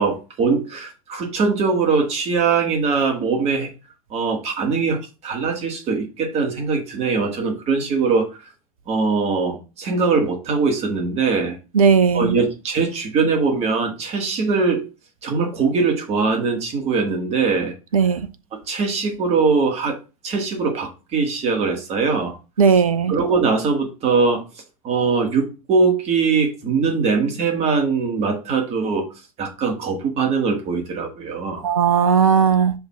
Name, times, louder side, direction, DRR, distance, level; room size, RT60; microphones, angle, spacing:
voice 1, 0.0-3.7 4.1-8.3 8.9-11.6 12.1-14.9 15.2-17.7 18.7-20.0 20.2-22.4 23.1-24.4 24.8-29.1 29.4-31.6, right 4 dB, 35° right, 2.0 m, -21 dB
voice 2, 11.7-12.4 17.9-18.3 22.6-23.1 31.6-32.7, right 6 dB, 70° right, 0.7 m, -16 dB
5.6 x 3.3 x 5.6 m
figure-of-eight pair, 85°, 19 cm